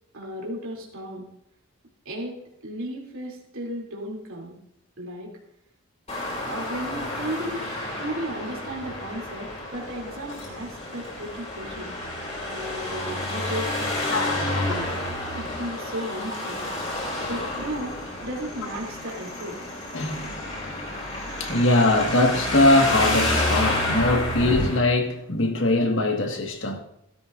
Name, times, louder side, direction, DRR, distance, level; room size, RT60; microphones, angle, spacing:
voice 1, 0.1-1.3 2.0-2.4 2.6-4.6 5.0-5.3 6.4-7.6 8.0-12.0 12.4-14.9 15.3-16.6 17.2-19.6, right 1 dB, 80° right, 2.9 m, -34 dB
Traffic noise roadway noise, 6.1-24.8, left 1 dB, 35° left, 4.5 m, -30 dB
voice 2, 14.1-14.6 19.9-26.8, left 2 dB, 65° left, 1.7 m, -22 dB
16.5 x 13.0 x 2.6 m
head